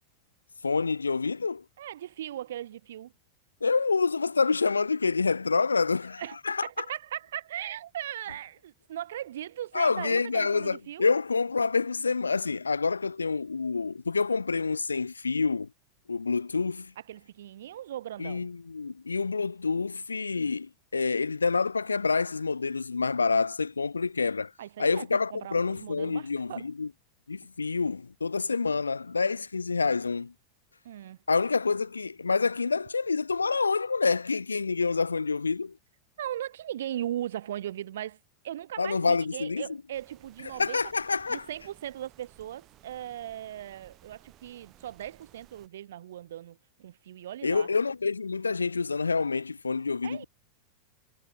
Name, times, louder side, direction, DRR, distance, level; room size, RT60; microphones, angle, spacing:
voice 1, 0.6-1.6 3.6-6.8 9.7-15.7 16.1-16.9 18.2-24.5 24.8-26.9 27.3-30.3 31.3-35.8 38.8-39.6 40.6-41.5 47.4-50.2, left 4 dB, 75° left, 0.4 m, -27 dB
voice 2, 1.8-3.1 6.2-6.4 6.6-11.1 17.1-18.5 24.6-25.1 25.3-26.7 30.8-31.2 36.2-38.2 38.4-40.8 41.3-47.7 50.0-50.2, right 11 dB, 60° right, 0.4 m, -38 dB
sound 1, 39.9-45.7, right 15 dB, 35° right, 5.1 m, -58 dB
figure-of-eight pair, 90°, 0 cm